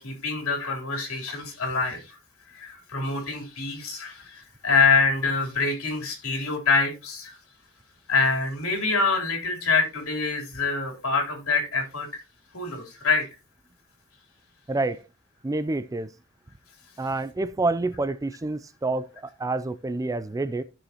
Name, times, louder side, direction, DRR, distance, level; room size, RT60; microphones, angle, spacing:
voice 1, 0.0-2.2 2.5-7.4 8.1-12.1 12.5-13.2, left 4 dB, 70° left, 3.6 m, -25 dB
voice 2, 14.7-15.0 15.4-16.1 17.0-20.6, right 2 dB, 15° right, 0.4 m, -28 dB
14.5 x 6.3 x 2.9 m
head